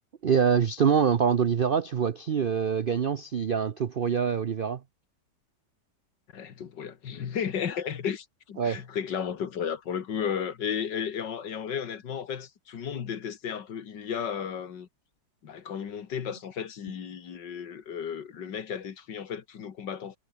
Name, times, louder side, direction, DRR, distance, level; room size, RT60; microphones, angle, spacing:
voice 1, 0.2-4.8 8.6-8.8, right 7 dB, 75° right, 0.5 m, -25 dB
voice 2, 6.3-14.9 15.4-20.2, left 7 dB, 80° left, 2.3 m, -34 dB
omnidirectional pair, 1.9 m